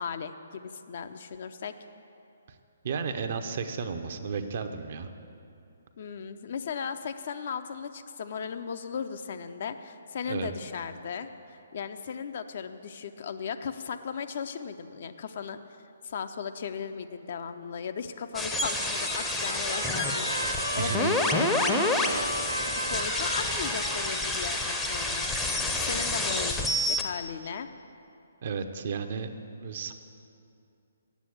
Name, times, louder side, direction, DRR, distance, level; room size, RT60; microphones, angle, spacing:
voice 1, 0.0-1.7 6.0-15.6 16.0-20.3 20.7-22.1 22.6-25.3 25.8-27.7, left 6 dB, 45° left, 9 dB, 0.5 m, -36 dB
voice 2, 2.8-5.1 10.2-10.5 20.8-21.2 25.8-25.9 28.4-29.9, right 5 dB, 45° right, 7 dB, 0.6 m, -33 dB
sound 1, 18.3-27.0, left 2 dB, 5° left, 0.6 m, -29 dB
Trumpet, 18.7-26.4, right 1 dB, 80° right, 1.4 m, -36 dB
8.2 x 7.5 x 8.5 m, 2.6 s
figure-of-eight pair, 130°, 0 cm